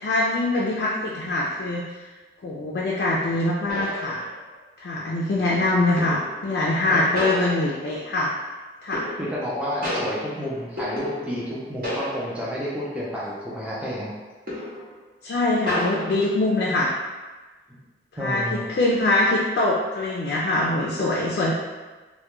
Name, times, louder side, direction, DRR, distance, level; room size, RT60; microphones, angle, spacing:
voice 1, 0.0-1.8 2.4-4.2 4.8-8.3 8.8-9.0 15.2-16.9 18.2-21.5, left 2 dB, 65° left, -4 dB, 0.3 m, -23 dB
sound 1, 3.7-4.6 6.0-6.5 7.2-8.1 8.9-9.5 9.8-11.6 11.8-12.6 13.0-13.1 14.5-15.0 15.7-16.1, equal, 50° right, 0.6 m, -32 dB
voice 2, 9.2-14.1 18.2-18.7, equal, 5° right, -7 dB, 0.4 m, -30 dB
2.2 x 2.1 x 2.9 m, 1.3 s
head